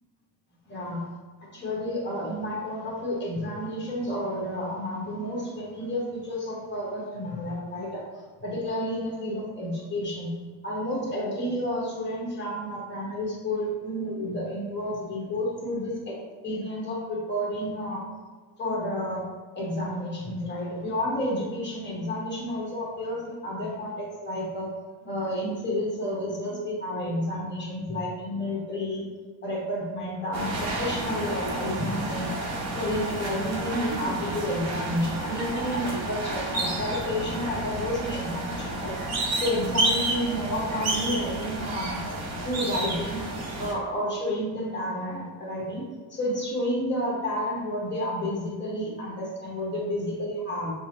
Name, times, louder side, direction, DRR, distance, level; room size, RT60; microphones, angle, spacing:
voice 1, 0.7-1.0 1.5-8.0 8.4-10.4 10.6-16.2 16.4-18.0 18.6-19.2 19.5-24.7 25.0-29.0 29.4-32.3 32.8-39.0 39.4-42.0 42.4-43.2 43.6-45.8 46.1-50.7, left 1 dB, 25° left, -4 dB, 1.3 m, -30 dB
sound 1, 30.3-43.7, right 2 dB, 40° right, 0.9 m, -30 dB
6.0 x 2.1 x 3.0 m, 1.5 s
cardioid pair, 125°, 41 cm